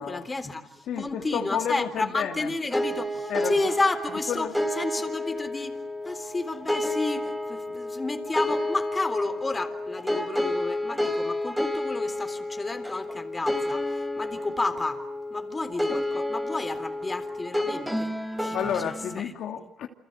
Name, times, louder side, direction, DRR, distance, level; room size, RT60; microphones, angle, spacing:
voice 1, 0.0-4.5 4.8-15.0 15.3-18.7 19.2-19.3, left 3 dB, 20° left, 3.8 m, -31 dB
voice 2, 0.9-2.5 3.3-3.7 4.3-4.6 18.5-19.9, left 8 dB, 75° left, 2.6 m, -31 dB
sound 1, 2.7-19.2, left 1 dB, 5° right, 4.0 m, -30 dB
29.5 x 27.0 x 6.7 m
cardioid pair, 90°, 0 cm